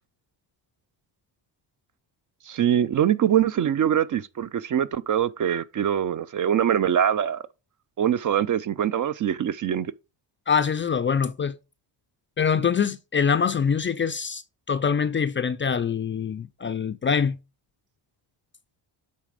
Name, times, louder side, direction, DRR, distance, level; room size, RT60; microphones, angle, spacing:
voice 1, 2.5-7.4 8.0-9.9, right 9 dB, 45° right, 0.5 m, -23 dB
voice 2, 10.5-11.6 12.4-14.4 14.7-17.4, left 6 dB, 25° left, 0.4 m, -24 dB
8.5 x 3.3 x 4.9 m
cardioid pair, 95°, 46 cm